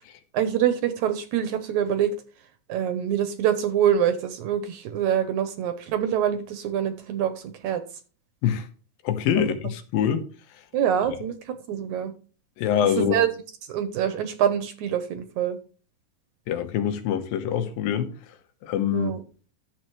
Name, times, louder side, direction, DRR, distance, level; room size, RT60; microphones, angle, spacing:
voice 1, 0.3-2.1 2.7-7.8 9.4-9.5 10.7-12.1 13.0-13.3 13.7-15.6 18.9-19.2, right 9 dB, 70° right, 2.0 m, -25 dB
voice 2, 9.0-10.2 12.6-13.2 16.5-18.1 18.6-19.1, left 9 dB, 85° left, 2.8 m, -24 dB
12.0 x 7.5 x 3.2 m
omnidirectional pair, 4.0 m